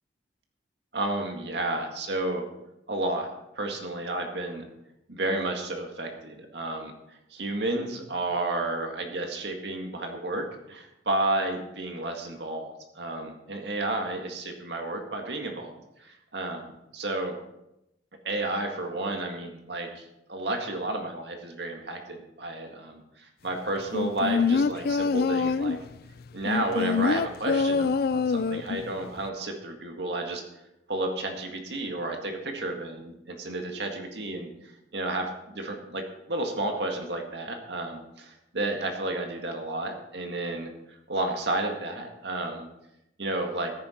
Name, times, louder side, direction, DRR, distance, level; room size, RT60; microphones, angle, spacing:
voice 1, 0.9-2.5 2.9-3.3 3.6-4.6 5.1-15.7 16.0-17.3 18.2-25.8 26.3-30.4 30.9-42.7 43.2-43.7, right 2 dB, 65° right, 3 dB, 2.0 m, -32 dB
sound 1, 23.9-25.9 26.4-28.9 29.2-29.3, left 5 dB, 55° left, 0.4 m, -25 dB
13.5 x 10.5 x 4.4 m, 0.87 s
head